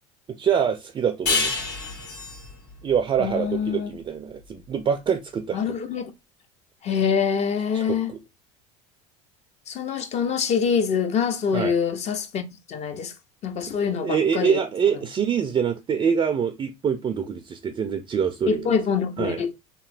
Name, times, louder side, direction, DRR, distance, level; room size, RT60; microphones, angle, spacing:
voice 1, 0.3-1.6 2.8-5.8 7.7-8.2 11.5-11.7 13.6-18.7 19.2-19.4, right 7 dB, 25° right, 0.3 m, -25 dB
sound 1, 1.3-4.4, left 4 dB, 75° left, 1.6 m, -29 dB
voice 2, 3.2-3.9 5.5-6.1 6.8-8.1 9.7-12.4 12.7-13.1 13.4-14.6 18.5-19.5, left 6 dB, 40° left, 0.5 m, -25 dB
2.9 x 2.7 x 2.5 m
hypercardioid pair, 80°, 17 cm